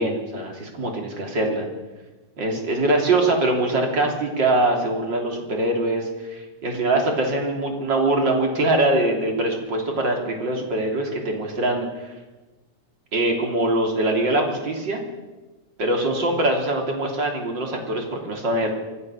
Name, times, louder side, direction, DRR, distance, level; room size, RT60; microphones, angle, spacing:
voice 1, 0.0-1.7 2.4-12.1 13.1-15.0 15.8-18.7, right 2 dB, 35° right, 2 dB, 3.7 m, -23 dB
24.0 x 15.0 x 7.2 m, 1.2 s
omnidirectional pair, 3.4 m